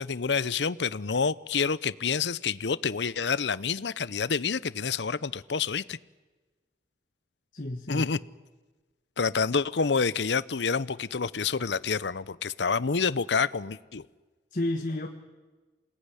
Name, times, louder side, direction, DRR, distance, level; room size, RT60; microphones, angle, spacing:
voice 1, 0.0-6.0 7.9-8.2 9.2-14.0, left 5 dB, 85° left, 0.7 m, -28 dB
voice 2, 7.5-8.1 14.5-15.1, left 1 dB, 45° left, 1.5 m, -31 dB
27.5 x 18.5 x 9.9 m
head